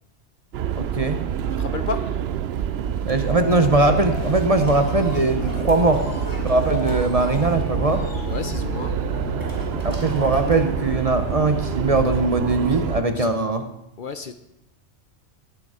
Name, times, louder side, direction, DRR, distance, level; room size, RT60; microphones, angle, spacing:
sound 1, 0.5-13.0, right 9 dB, 65° right, 0.8 m, -27 dB
voice 1, 0.7-1.2 3.1-6.0 6.4-8.0 9.8-13.6, right 2 dB, 35° right, 0.8 m, -20 dB
voice 2, 1.5-2.2 8.2-9.0 9.5-9.6 13.1-13.3 14.0-14.3, left 5 dB, 55° left, 0.8 m, -32 dB
sound 2, 3.3-13.3, left 6 dB, 85° left, 1.1 m, -34 dB
sound 3, 4.6-11.1 11.8-11.9, left 1 dB, 15° left, 2.8 m, -38 dB
17.5 x 6.8 x 4.9 m
omnidirectional pair, 1.2 m